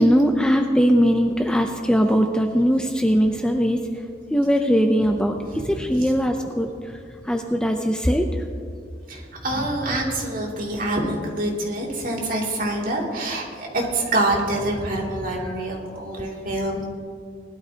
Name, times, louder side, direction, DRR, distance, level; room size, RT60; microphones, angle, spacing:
voice 1, 0.0-3.8 4.3-5.3 5.7-6.7 7.3-8.2, equal, 5° left, 4 dB, 0.5 m, -20 dB
voice 2, 5.4-6.1 9.1-16.8, right 1 dB, 50° right, -2 dB, 2.7 m, -26 dB
19.5 x 12.5 x 2.9 m, 2.3 s
head